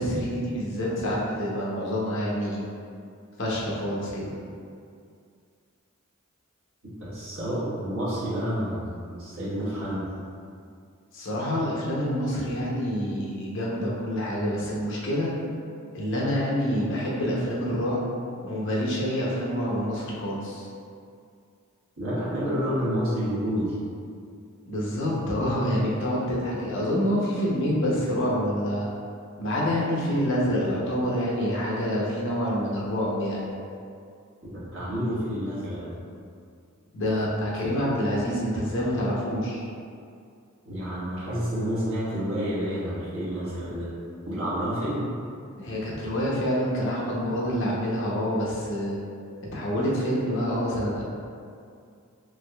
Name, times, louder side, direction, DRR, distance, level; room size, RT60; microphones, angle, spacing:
voice 1, 0.0-2.7 3.4-4.4 11.1-15.3 15.9-18.1 18.4-20.7 24.7-28.9 29.4-33.5 36.9-39.6 45.6-49.0 49.4-51.0, equal, 60° left, -5 dB, 0.7 m, -27 dB
voice 2, 6.8-10.1 22.0-23.7 34.5-36.0 40.6-43.9 44.2-45.1, equal, 70° right, -9 dB, 1.1 m, -29 dB
3.4 x 3.0 x 2.2 m, 2.3 s
head